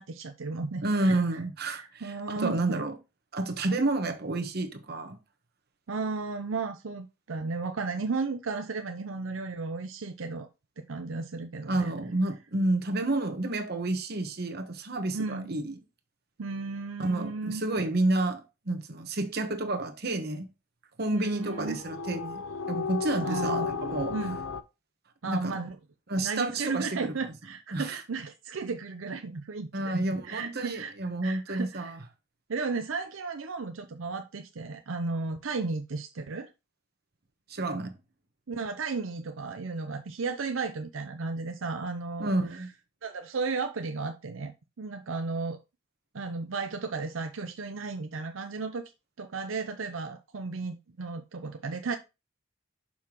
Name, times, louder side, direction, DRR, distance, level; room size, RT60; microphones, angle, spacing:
voice 1, 0.0-1.2 1.7-2.8 5.9-10.5 10.8-11.9 15.1-15.5 16.4-17.6 21.1-21.8 23.2-23.7 24.1-24.4 25.2-25.8 26.2-30.9 31.2-32.0 32.5-36.5 38.5-42.6 43.0-45.6 46.1-48.9 49.2-52.0, right 4 dB, 90° right, 0.6 m, -34 dB
voice 2, 0.8-3.0 3.3-5.2 11.7-15.8 17.0-20.5 21.0-22.4 22.7-24.1 25.2-25.6 26.1-27.1 27.7-28.0 29.7-32.0 37.5-38.0 42.2-42.7, right 2 dB, 55° right, 1.1 m, -30 dB
sound 1, 21.3-24.6, left 5 dB, 80° left, 0.6 m, -34 dB
6.6 x 5.5 x 2.9 m
head